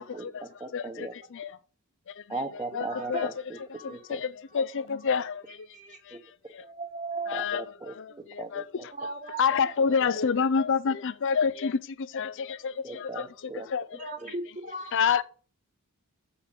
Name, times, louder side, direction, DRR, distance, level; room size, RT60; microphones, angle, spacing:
voice 1, 0.0-1.1 2.3-3.6 3.9-4.2 6.1-6.2 7.3-7.9 8.4-8.9 9.8-9.9 12.8-13.7 14.2-14.3, right 3 dB, 20° right, 1.2 m, -38 dB
voice 2, 0.7-1.5 2.1-2.2 2.7-3.3 3.8-5.7 6.0-6.2 6.5-6.6 7.3-7.6 8.0-8.6 9.4-13.3 13.7-14.1 14.9-15.2, left 6 dB, 60° left, 0.5 m, -28 dB
voice 3, 2.9-3.2 3.8-4.1 5.7-6.2 6.6-7.5 8.1-8.2 8.9-9.7 14.0-15.2, right 3 dB, 35° right, 2.0 m, -38 dB
7.7 x 5.8 x 5.8 m
head